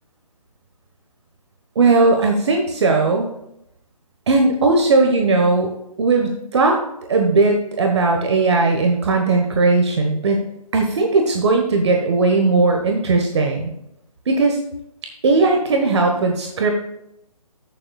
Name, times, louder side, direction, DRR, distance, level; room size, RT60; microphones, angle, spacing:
voice 1, 1.7-3.3 4.3-5.7 6.0-6.8 7.1-10.4 10.7-13.7 14.3-14.6 15.2-16.7, right 3 dB, 45° right, 2 dB, 1.2 m, -17 dB
14.0 x 7.0 x 2.3 m, 0.79 s
figure-of-eight pair, 155°, 20 cm